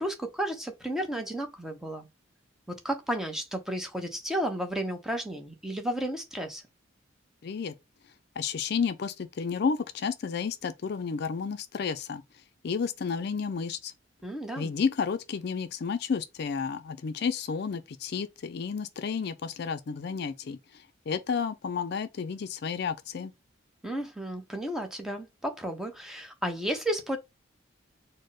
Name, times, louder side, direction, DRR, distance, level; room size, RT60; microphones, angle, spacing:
voice 1, 0.0-2.1 2.7-6.6 14.2-14.7 23.8-27.2, right 1 dB, ahead, 0.7 m, -33 dB
voice 2, 7.4-7.7 8.4-12.2 12.6-13.9 14.6-20.6 21.1-23.3, left 5 dB, 55° left, 0.4 m, -31 dB
4.4 x 2.1 x 4.6 m
head